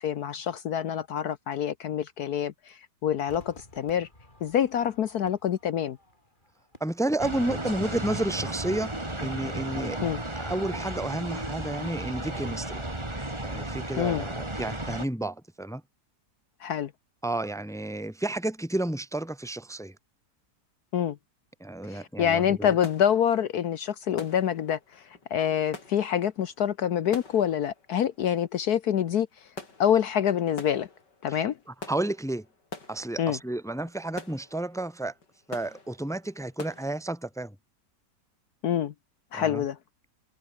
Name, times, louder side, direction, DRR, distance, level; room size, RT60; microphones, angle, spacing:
voice 1, 0.0-4.1 4.4-6.0 10.0-10.2 14.0-14.3 16.6-16.9 20.9-21.2 21.9-24.8 25.3-29.3 29.8-30.9 31.2-31.5 33.2-33.4 38.6-38.9 39.3-39.8, left 9 dB, 65° left, 1.4 m, -26 dB
Crowd / Fireworks, 3.3-8.7 8.9-9.0, left 1 dB, 25° left, 7.3 m, -55 dB
voice 2, 6.8-10.0 10.3-12.8 13.4-15.8 17.2-19.9 21.6-22.7 31.3-31.4 31.9-32.4 32.9-35.1 35.5-37.5 39.3-39.6, right 1 dB, 5° left, 0.7 m, -31 dB
sound 1, 7.2-15.1, right 1 dB, 15° right, 3.2 m, -34 dB
sound 2, 21.8-22.0 22.3-36.9, left 3 dB, 85° left, 4.6 m, -47 dB
omnidirectional pair, 1.8 m